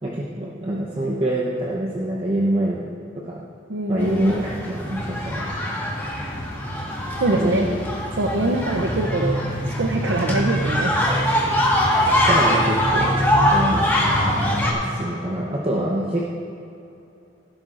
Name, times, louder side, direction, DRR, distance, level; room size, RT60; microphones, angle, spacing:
voice 1, 0.0-2.9 3.2-3.4 3.9-5.5 7.3-7.7 8.4-8.6 11.0-11.1 12.3-13.1 13.5-13.9 14.7-16.2, right 1 dB, 30° right, -4 dB, 0.8 m, -25 dB
voice 2, 3.7-4.4 7.2-7.7 8.2-9.4 9.8-10.9 12.0-12.3, right 2 dB, 65° right, 2 dB, 0.7 m, -24 dB
sound 1, 4.0-14.7, equal, 10° left, 1.5 m, -22 dB
16.0 x 11.0 x 2.5 m, 2.7 s
head